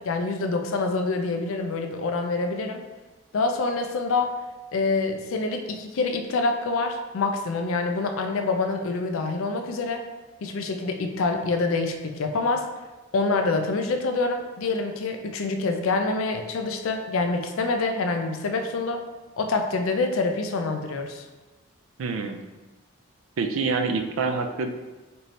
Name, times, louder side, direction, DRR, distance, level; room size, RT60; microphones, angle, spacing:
voice 1, 0.0-2.8 3.3-4.3 4.7-10.0 10.4-12.7 13.1-19.0 19.4-21.3, left 3 dB, 70° left, 5 dB, 0.4 m, -26 dB
voice 2, 22.0-22.4 23.4-24.7, right 4 dB, 70° right, 6 dB, 0.4 m, -26 dB
4.4 x 2.6 x 3.2 m, 1.2 s
head